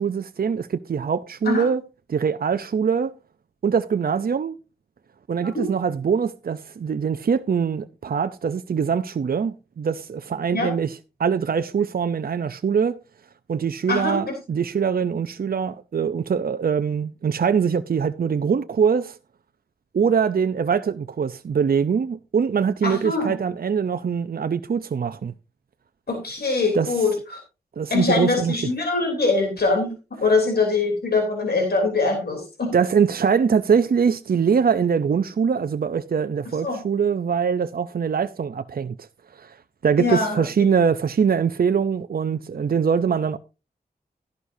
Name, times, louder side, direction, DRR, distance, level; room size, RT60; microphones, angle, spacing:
voice 1, 0.0-1.8 2.1-3.2 3.6-4.5 5.3-13.0 13.5-19.2 19.9-25.3 26.7-26.9 27.8-28.5 32.7-39.0 39.3-39.6 39.8-43.4, right 6 dB, 65° right, 0.6 m, -23 dB
voice 2, 13.9-14.3 22.8-23.3 26.1-27.4 27.9-29.9 30.2-32.7 36.6-36.8 40.0-40.4, left 3 dB, 75° left, 3.2 m, -23 dB
13.0 x 11.5 x 2.7 m
cardioid pair, 45°, 16 cm